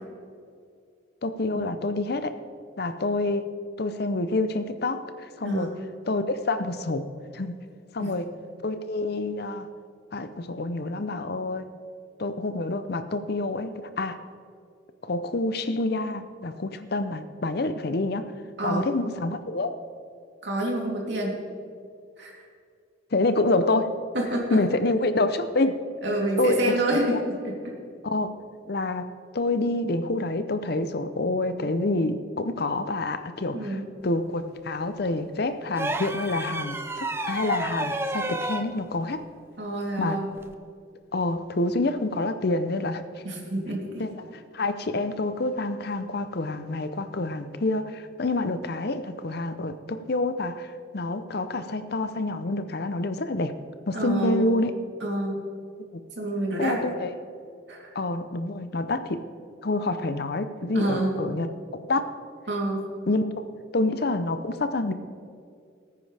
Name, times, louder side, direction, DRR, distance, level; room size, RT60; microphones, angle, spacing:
voice 1, 1.2-2.3 2.8-3.5 3.8-5.7 6.1-7.1 7.3-7.6 7.9-8.3 8.6-9.7 10.1-11.7 12.2-14.2 15.0-18.3 18.6-19.8 23.1-23.9 24.5-25.8 26.4-26.8 27.1-27.2 28.0-28.3 28.7-39.2 40.0-40.2 41.1-43.0 44.0-53.5 53.9-54.7 55.9-56.0 56.6-57.1 57.9-59.2 59.6-61.5 61.9-62.1 63.1-63.3 63.7-64.9, left 2 dB, 50° left, 11 dB, 0.6 m, -27 dB
voice 2, 20.4-21.4 22.2-22.3 24.1-24.6 26.0-27.2 27.4-27.6 33.5-33.8 39.6-40.3 43.2-44.0 53.9-54.4 55.0-55.4 56.2-56.8 57.7-57.9 60.7-61.1 62.5-62.9, right 1 dB, 60° right, -3 dB, 3.0 m, -27 dB
sound 1, 35.7-38.7 40.4-40.5, right 2 dB, 10° right, 0.5 m, -31 dB
19.0 x 9.5 x 3.4 m, 2.3 s
head